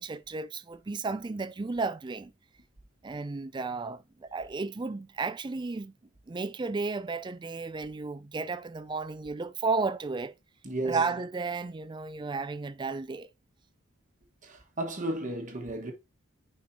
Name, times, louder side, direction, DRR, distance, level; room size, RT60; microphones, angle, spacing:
voice 1, 0.0-2.3 3.0-5.9 6.3-10.3 10.8-13.3, right 4 dB, 20° right, 0.4 m, -33 dB
voice 2, 10.6-11.0 14.4-15.9, right 2 dB, 40° right, 1.3 m, -33 dB
9.6 x 4.4 x 2.7 m
head